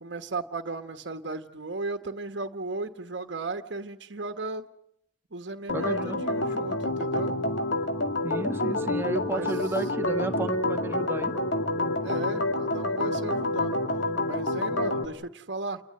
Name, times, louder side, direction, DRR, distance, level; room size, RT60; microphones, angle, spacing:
voice 1, 0.0-4.7 5.3-7.3 9.3-9.5 12.0-13.8 14.3-15.8, right 3 dB, 70° right, 7 dB, 1.3 m, -35 dB
Organ, 5.7-15.0, left 2 dB, 75° left, 2.3 m, -28 dB
voice 2, 5.7-6.2 6.5-6.8 8.2-11.4, right 2 dB, 15° right, 5 dB, 1.5 m, -33 dB
29.0 x 20.5 x 7.8 m, 0.74 s
head